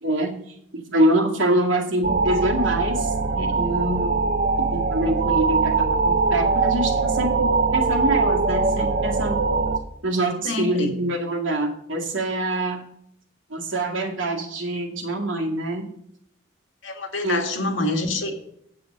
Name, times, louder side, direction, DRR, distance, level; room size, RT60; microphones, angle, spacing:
voice 1, 0.0-4.1 4.7-9.4 10.0-12.8 13.5-15.9 17.2-17.5, right 1 dB, 75° right, 0 dB, 2.2 m, -25 dB
sound 1, 2.0-9.8, right 4 dB, 45° right, 0.7 m, -22 dB
voice 2, 10.4-10.9 16.8-18.3, left 2 dB, 80° left, 3 dB, 1.9 m, -26 dB
8.7 x 7.7 x 5.3 m, 0.73 s
head